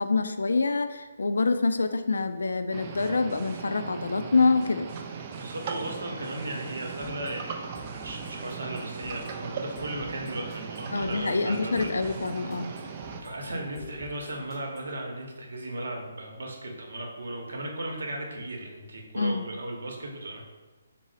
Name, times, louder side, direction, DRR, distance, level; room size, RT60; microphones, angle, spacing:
voice 1, 0.0-4.9 10.9-12.7 19.2-19.4, left 3 dB, 85° left, 9 dB, 0.3 m, -26 dB
sound 1, 2.7-13.2, right 6 dB, 35° right, 0.3 m, -39 dB
voice 2, 5.3-12.2 12.6-20.4, right 1 dB, 75° right, 1 dB, 0.8 m, -36 dB
sound 2, 7.0-15.0, left 1 dB, 15° right, 0.7 m, -47 dB
4.0 x 2.0 x 3.9 m, 1.2 s
hypercardioid pair, 160°, 0 cm